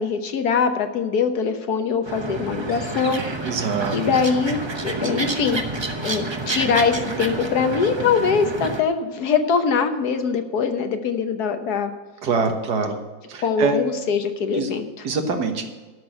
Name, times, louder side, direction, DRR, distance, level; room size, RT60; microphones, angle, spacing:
voice 1, 0.0-3.2 3.9-4.6 4.8-5.6 6.0-11.9 13.4-14.9, left 5 dB, 75° left, 7 dB, 1.5 m, -22 dB
sound 1, 2.0-8.8, right 2 dB, 25° right, 0.7 m, -29 dB
voice 2, 3.4-4.0 12.2-13.0 13.3-13.8 14.5-14.7 15.0-15.7, right 4 dB, 80° right, 5 dB, 1.9 m, -24 dB
13.0 x 6.1 x 7.8 m, 1.3 s
omnidirectional pair, 1.7 m